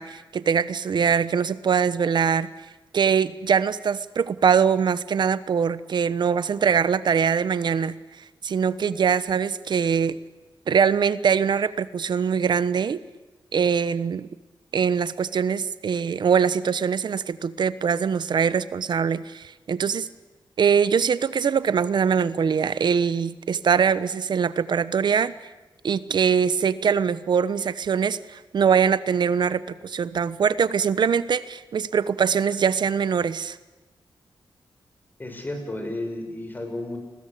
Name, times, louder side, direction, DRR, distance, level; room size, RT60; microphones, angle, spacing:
voice 1, 0.0-2.5 2.9-10.2 10.7-13.0 13.5-14.3 14.7-20.1 20.6-25.3 25.8-33.6, right 6 dB, 65° right, 15 dB, 1.1 m, -23 dB
voice 2, 35.2-37.0, left 1 dB, 25° left, 5 dB, 6.6 m, -32 dB
29.5 x 21.5 x 8.6 m, 1.1 s
wide cardioid pair, 110°, 8 cm